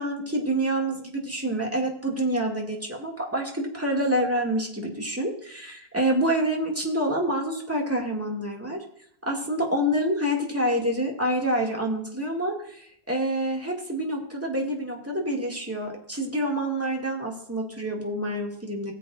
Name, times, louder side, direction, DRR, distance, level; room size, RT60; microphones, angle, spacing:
voice 1, 0.0-8.8 9.3-18.9, right 1 dB, 15° right, -1 dB, 2.2 m, -27 dB
18.5 x 7.7 x 2.5 m, 0.69 s
omnidirectional pair, 1.1 m